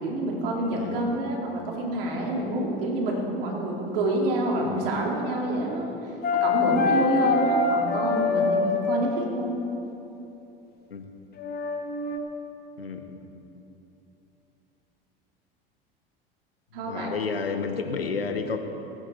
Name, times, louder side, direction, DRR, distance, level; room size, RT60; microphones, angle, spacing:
voice 1, 0.0-9.6 16.7-17.1, right 1 dB, 70° right, -1 dB, 3.0 m, -27 dB
voice 2, 0.8-1.2 4.6-4.9 10.9-11.1 12.8-13.2 16.8-18.6, left 5 dB, 90° left, 6 dB, 1.2 m, -31 dB
sound 1, 6.2-9.1 11.4-12.2, left 4 dB, 35° left, 1.8 m, -24 dB
20.5 x 9.5 x 4.4 m, 3.0 s
hypercardioid pair, 75°, 29 cm